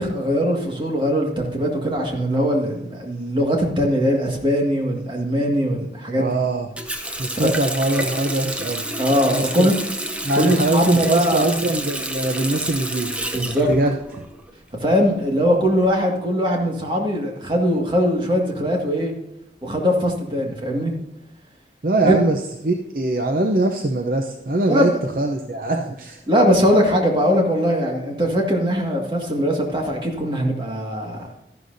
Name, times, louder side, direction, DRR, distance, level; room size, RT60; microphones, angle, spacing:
voice 1, 0.0-6.4 7.3-7.6 9.0-9.8 10.3-11.5 13.3-13.7 14.8-19.1 19.6-20.9 22.0-22.2 24.7-25.0 26.3-31.3, equal, 25° right, 0 dB, 1.9 m, -21 dB
voice 2, 6.2-6.7 7.2-8.9 9.3-9.7 10.2-13.1 13.7-14.2 21.8-26.2, right 2 dB, 50° right, 3 dB, 0.7 m, -22 dB
Water tap faucet, 6.8-14.5 14.8-15.9, right 1 dB, 5° right, 0.7 m, -29 dB
13.0 x 11.5 x 2.7 m, 0.90 s
head